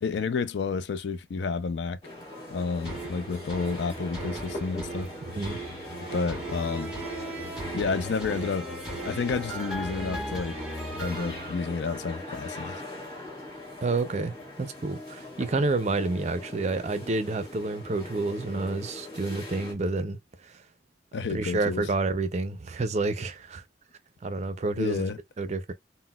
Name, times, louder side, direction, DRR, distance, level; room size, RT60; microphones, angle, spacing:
voice 1, 0.0-2.0 2.5-5.1 6.1-6.9 7.7-8.7 9.0-10.6 11.0-12.8 21.1-21.9 24.8-25.2, left 4 dB, 65° left, 0.4 m, -30 dB
sound 1, 2.0-19.7, left 2 dB, 25° left, 1.4 m, -41 dB
sound 2, 2.8-12.2 12.7-12.8, right 2 dB, 5° right, 1.6 m, -37 dB
voice 2, 5.2-5.6 13.8-20.2 20.4-20.6 21.3-23.6 24.2-25.1 25.4-25.7, right 3 dB, 40° right, 0.4 m, -29 dB
3.9 x 2.0 x 2.2 m
head